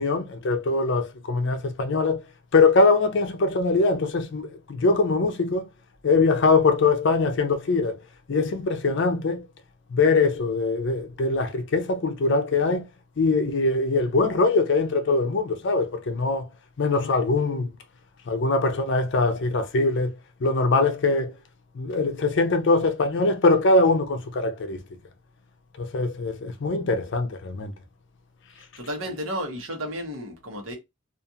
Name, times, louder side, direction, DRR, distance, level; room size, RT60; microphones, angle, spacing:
voice 1, 0.0-2.2 2.5-5.7 6.0-8.0 8.3-9.5 9.9-12.8 13.2-16.5 16.8-17.7 18.3-20.1 20.4-21.3 21.8-24.8 25.8-27.7, left 3 dB, 60° left, 0.5 m, -22 dB
voice 2, 28.8-30.8, equal, 85° right, 1.0 m, -32 dB
2.5 x 2.4 x 2.6 m
head